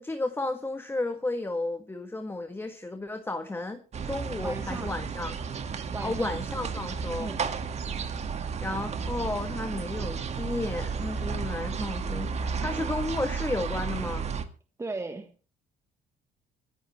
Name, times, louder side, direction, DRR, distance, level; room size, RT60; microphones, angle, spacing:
voice 1, 0.0-5.3 6.0-7.3 8.6-14.3, left 2 dB, 15° left, 1.7 m, -33 dB
sound 1, 3.9-14.5, right 6 dB, 40° right, 1.9 m, -33 dB
voice 2, 4.4-4.9 5.9-6.4 7.2-7.4 14.8-15.3, right 3 dB, 15° right, 1.6 m, -36 dB
25.5 x 11.0 x 3.3 m
cardioid pair, 110°, 17 cm